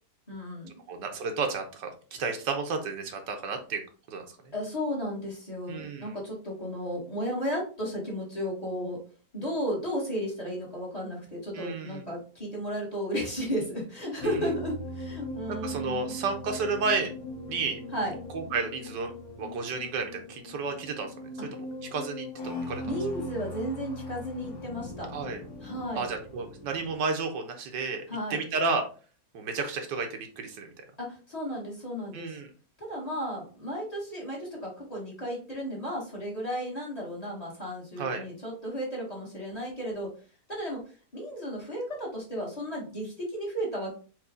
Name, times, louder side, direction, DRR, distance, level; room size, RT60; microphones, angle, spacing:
voice 1, 0.3-0.7 4.5-9.0 9.3-16.1 17.9-18.1 22.8-25.1 25.6-26.0 28.1-28.4 31.0-32.4 32.8-40.1 40.5-40.8 41.1-43.9, equal, 25° left, -3 dB, 1.7 m, -34 dB
voice 2, 0.9-1.9 2.2-3.8 4.1-4.5 5.7-6.2 11.5-12.1 14.2-14.4 15.5-17.1 17.5-17.8 18.3-19.1 19.4-21.1 21.5-21.6 21.9-22.8 25.1-25.4 26.0-28.0 28.3-28.8 29.3-30.7 32.1-32.5 38.0-38.2, right 4 dB, 80° right, 4 dB, 1.5 m, -32 dB
sound 1, 14.2-26.9, left 1 dB, 65° left, 1.7 m, -40 dB
4.7 x 2.9 x 3.6 m, 0.38 s
omnidirectional pair, 1.8 m